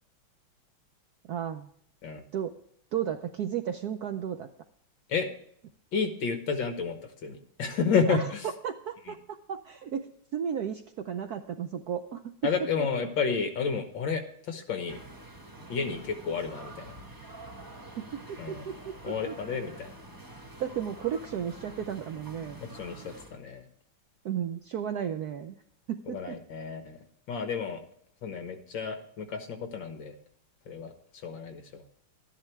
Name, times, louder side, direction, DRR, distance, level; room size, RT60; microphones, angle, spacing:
voice 1, 1.3-1.7 2.3-2.5 2.9-4.5 8.1-12.5 12.8-13.1 18.0-19.4 20.6-22.6 24.2-25.6 25.9-26.4, right 8 dB, 70° right, 7 dB, 0.9 m, -34 dB
voice 2, 5.9-8.5 9.1-9.2 12.4-15.0 15.7-17.0 18.4-18.6 19.0-19.9 22.6-23.6 26.1-27.0 27.3-27.8 28.2-30.2 30.7-30.9 31.2-31.8, left 5 dB, 65° left, 7 dB, 1.9 m, -31 dB
sound 1, 14.9-23.4, right 1 dB, 15° right, 0.6 m, -47 dB
12.5 x 10.5 x 3.2 m, 0.68 s
omnidirectional pair, 2.3 m